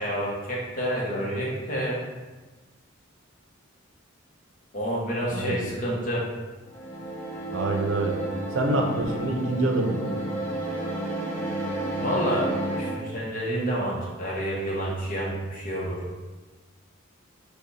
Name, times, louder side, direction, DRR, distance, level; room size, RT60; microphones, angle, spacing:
voice 1, 0.0-2.0 4.7-6.3 12.0-12.5 12.8-16.0, equal, 40° left, -4 dB, 1.0 m, -29 dB
voice 2, 5.3-5.7 7.5-8.2 8.5-10.1, right 2 dB, 65° right, 2 dB, 0.7 m, -26 dB
chord orchestral, 6.7-13.0, right 1 dB, 10° left, 0.7 m, -31 dB
5.1 x 2.3 x 4.1 m, 1.2 s
head